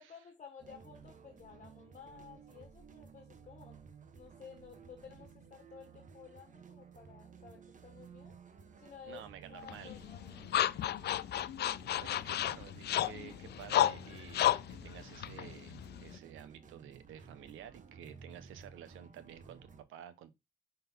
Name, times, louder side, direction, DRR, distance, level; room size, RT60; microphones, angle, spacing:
voice 1, 0.0-3.8 4.1-8.4 8.8-10.6, left 6 dB, 40° left, 1.6 m, -54 dB
sound 1, 0.6-19.8, right 6 dB, 40° right, 1.0 m, -55 dB
voice 2, 9.1-10.0 12.0-20.3, right 10 dB, 85° right, 0.9 m, -51 dB
sound 2, 9.7-16.2, left 12 dB, 55° left, 0.4 m, -33 dB
5.6 x 4.0 x 5.4 m
cardioid pair, 90°, 20 cm